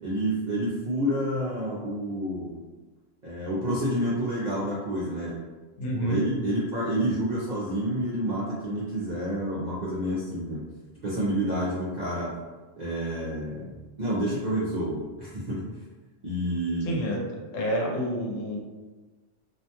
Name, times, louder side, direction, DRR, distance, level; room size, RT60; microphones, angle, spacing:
voice 1, 0.0-2.6 3.2-5.4 6.0-10.6 11.0-12.3 12.8-15.7 16.2-17.0, right 1 dB, 55° right, -8 dB, 0.5 m, -29 dB
voice 2, 5.8-6.2 16.8-17.2 17.5-18.6, equal, 80° left, -1 dB, 1.0 m, -28 dB
2.4 x 2.1 x 2.8 m, 1.3 s
omnidirectional pair, 1.3 m